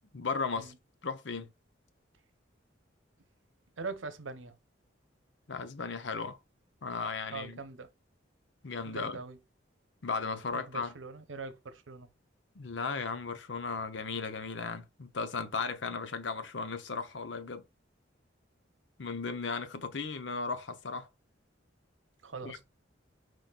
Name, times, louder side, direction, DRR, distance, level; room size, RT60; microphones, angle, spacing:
voice 1, 0.1-0.7 1.0-1.5 5.5-6.4 6.8-7.6 8.6-9.2 10.0-10.9 12.6-17.6 19.0-21.1 22.4-22.6, left 4 dB, 70° left, 0.8 m, -36 dB
voice 2, 3.8-4.6 7.3-7.9 8.9-9.4 10.5-12.1 22.2-22.6, right 4 dB, 85° right, 0.8 m, -42 dB
4.8 x 4.1 x 2.3 m
head